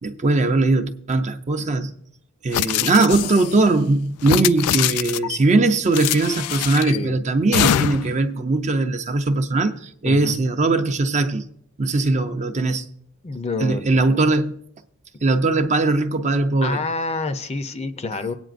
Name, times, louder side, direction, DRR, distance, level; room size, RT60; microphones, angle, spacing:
voice 1, 0.0-1.9 2.4-11.5 11.8-12.9 13.6-14.5 15.2-16.8, right 3 dB, 30° right, 0.5 m, -20 dB
sound 1, 2.5-3.6 4.2-5.4 5.9-7.0 7.5-8.2, left 11 dB, 80° left, 0.3 m, -23 dB
voice 2, 6.8-7.2 7.7-7.9 10.0-10.4 13.2-14.1 16.6-18.3, left 3 dB, 30° left, 0.5 m, -28 dB
18.5 x 9.0 x 2.5 m
head